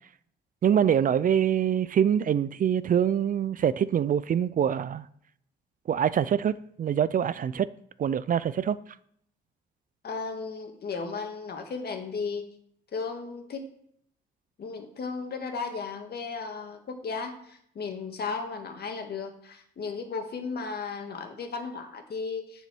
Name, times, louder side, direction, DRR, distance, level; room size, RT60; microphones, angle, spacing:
voice 1, 0.6-5.1 5.9-7.7 8.0-8.8, right 9 dB, 45° right, 0.4 m, -24 dB
voice 2, 10.0-12.5 12.9-13.7 14.6-22.7, left 4 dB, 55° left, 1.8 m, -35 dB
7.1 x 6.9 x 6.1 m
cardioid pair, 90°, 20 cm